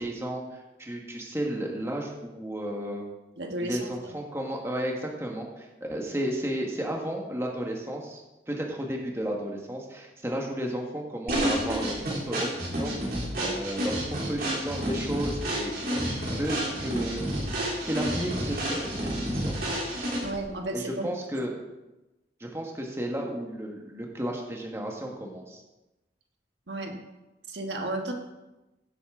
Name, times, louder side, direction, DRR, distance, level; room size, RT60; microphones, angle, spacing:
voice 1, 0.0-3.0 3.6-8.2 8.5-12.0 12.3-13.9 14.3-17.2 17.6-19.6 20.7-21.5 22.4-25.6, right 1 dB, 15° right, 0 dB, 1.5 m, -33 dB
voice 2, 3.4-3.9 20.2-21.1 26.7-27.0 27.5-28.1, right 2 dB, 70° right, 3 dB, 1.4 m, -33 dB
sound 1, 11.3-20.4, right 1 dB, 55° right, 3.5 m, -30 dB
16.5 x 8.3 x 3.8 m, 1.0 s
head